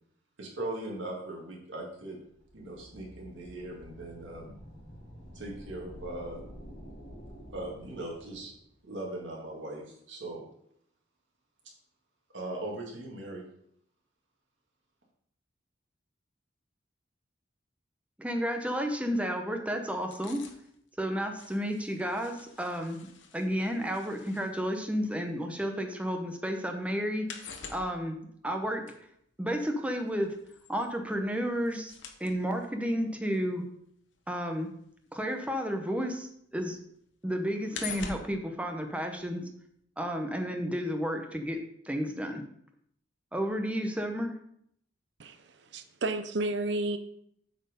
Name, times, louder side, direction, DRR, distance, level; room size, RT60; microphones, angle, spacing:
voice 1, 0.4-2.2 2.5-4.6 5.3-6.5 7.5-8.5 8.8-10.5 12.3-13.4, right 1 dB, 80° right, -2 dB, 2.2 m, -39 dB
sound 1, 2.2-8.7, equal, 45° left, 2.4 m, -49 dB
voice 2, 18.2-20.4 21.0-23.1 23.3-27.3 27.7-28.2 28.4-28.9 29.4-30.3 30.7-31.9 32.2-33.6 34.3-34.7 35.1-36.8 37.2-39.4 40.0-41.6 41.8-42.4 43.3-44.3, equal, 5° right, 4 dB, 0.9 m, -32 dB
sound 2, 20.0-26.1 26.4-36.1 36.4-39.5 39.8-39.9, left 5 dB, 90° left, 0.9 m, -47 dB
voice 3, 45.2-47.0, right 2 dB, 65° right, 9 dB, 0.7 m, -32 dB
8.2 x 4.5 x 5.2 m, 0.71 s
head